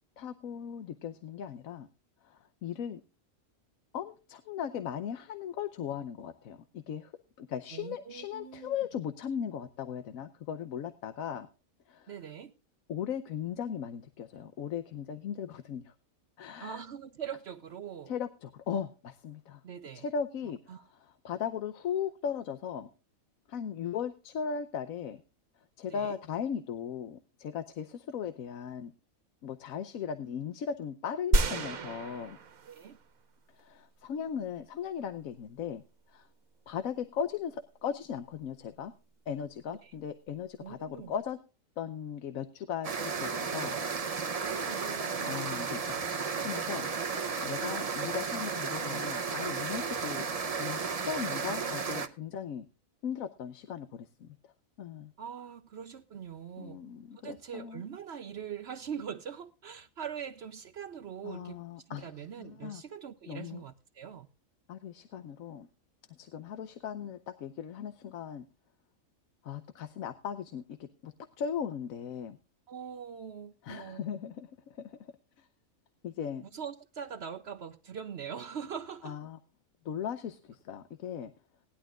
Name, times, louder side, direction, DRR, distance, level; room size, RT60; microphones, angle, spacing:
voice 1, 0.2-1.9 2.2-3.0 3.9-7.1 7.4-11.5 11.9-12.1 12.9-15.9 16.4-16.8 18.1-19.6 19.9-22.9 23.5-25.2 25.8-28.9 29.4-32.4 33.5-35.8 36.1-36.3 36.7-38.9 39.3-41.4 41.8-43.8 44.5-44.6 45.2-46.9 47.4-50.3 50.6-52.7 53.0-54.4 54.8-55.1 56.6-57.8 61.2-62.1 62.4-62.8 63.3-63.6 64.7-65.7 66.2-68.4 69.4-72.4 73.6-75.1 75.4-75.5 76.0-76.5 79.0-79.4 79.8-81.3, left 8 dB, 85° left, 1.2 m, -38 dB
voice 2, 7.7-8.7 12.1-12.5 16.6-18.1 19.6-20.1 20.7-20.8 25.9-26.2 32.7-33.0 39.7-39.9 40.6-41.1 44.4-45.4 55.2-56.8 57.1-64.3 72.7-74.0 76.4-79.2, right 8 dB, 60° right, 0.9 m, -42 dB
sound 1, 31.3-33.1 33.6-33.7, right 3 dB, 80° right, 1.5 m, -29 dB
sound 2, 42.8-52.1, right 5 dB, 35° right, 0.7 m, -33 dB
19.0 x 11.5 x 2.4 m
omnidirectional pair, 1.4 m